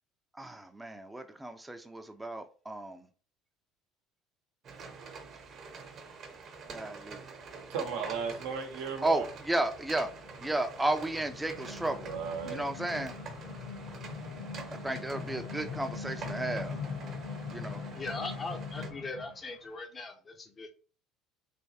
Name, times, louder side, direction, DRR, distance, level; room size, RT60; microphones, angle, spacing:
voice 1, 0.3-3.1 6.7-7.2 9.0-10.1 10.4-12.1 12.5-13.1 14.7-16.8 17.5-17.8, right 1 dB, 10° right, 0.6 m, -33 dB
sound 1, 4.6-18.9, right 5 dB, 50° right, 1.0 m, -47 dB
voice 2, 7.7-9.3 12.0-12.7, right 6 dB, 75° right, 0.8 m, -35 dB
sound 2, 9.0-19.4, left 4 dB, 75° left, 1.4 m, -42 dB
voice 3, 17.9-20.7, left 3 dB, 30° left, 0.7 m, -40 dB
3.4 x 3.0 x 2.8 m
hypercardioid pair, 75°, 0 cm